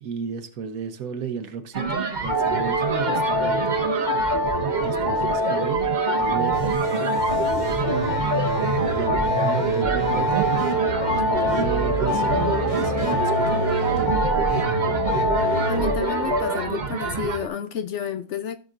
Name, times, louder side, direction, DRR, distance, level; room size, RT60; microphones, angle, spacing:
voice 1, 0.0-3.8 4.8-5.8 6.2-6.8 8.9-10.5 11.0-14.2, right 6 dB, 75° right, 1.4 m, -33 dB
sound 1, 1.7-17.5, right 5 dB, 40° right, 0.9 m, -28 dB
sound 2, 2.3-16.6, equal, 15° right, 1.3 m, -25 dB
sound 3, 6.5-16.0, equal, 25° left, 1.1 m, -29 dB
voice 2, 15.4-18.6, left 8 dB, 65° left, 0.8 m, -31 dB
16.0 x 6.0 x 2.5 m
omnidirectional pair, 1.5 m